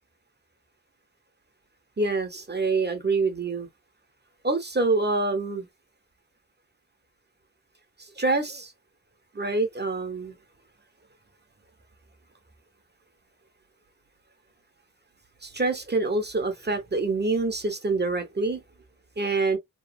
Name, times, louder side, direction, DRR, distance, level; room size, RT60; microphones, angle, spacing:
voice 1, 2.0-3.7 4.4-5.7 8.0-8.7 9.3-10.3 15.4-18.6 19.2-19.6, right 3 dB, 35° right, 0.7 m, -26 dB
2.9 x 2.3 x 2.2 m
wide cardioid pair, 70°, 31 cm